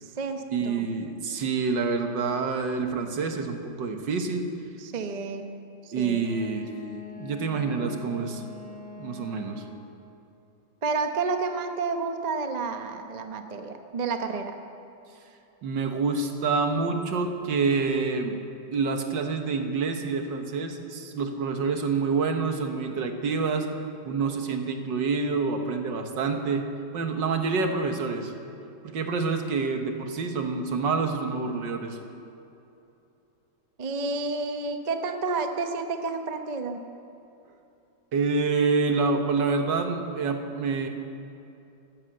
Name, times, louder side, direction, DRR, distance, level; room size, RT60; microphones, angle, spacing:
voice 1, 0.0-0.9 4.8-5.4 5.8-6.2 10.8-14.6 33.8-36.8, right 4 dB, 35° right, 6 dB, 0.7 m, -30 dB
voice 2, 0.5-4.5 5.9-6.7 7.2-8.4 9.0-9.6 15.6-18.4 18.7-23.7 24.1-28.3 28.8-32.0 38.1-40.9, right 4 dB, 75° right, 5 dB, 1.9 m, -27 dB
Wind instrument woodwind instrument, 6.2-10.0, left 4 dB, 65° left, 3.4 m, -43 dB
14.0 x 12.0 x 7.8 m, 2.8 s
omnidirectional pair, 2.0 m